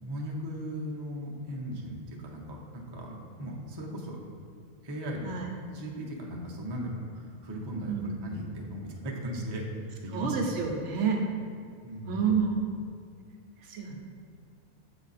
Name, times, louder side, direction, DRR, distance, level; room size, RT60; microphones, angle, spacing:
voice 1, 0.0-4.2 4.8-5.4 5.7-9.6 10.0-10.4 11.8-12.3, equal, 30° right, -2 dB, 0.5 m, -37 dB
voice 2, 10.1-11.2 12.1-12.8 13.6-14.0, right 6 dB, 65° right, 1 dB, 0.9 m, -29 dB
7.6 x 3.7 x 4.1 m, 2.1 s
omnidirectional pair, 1.4 m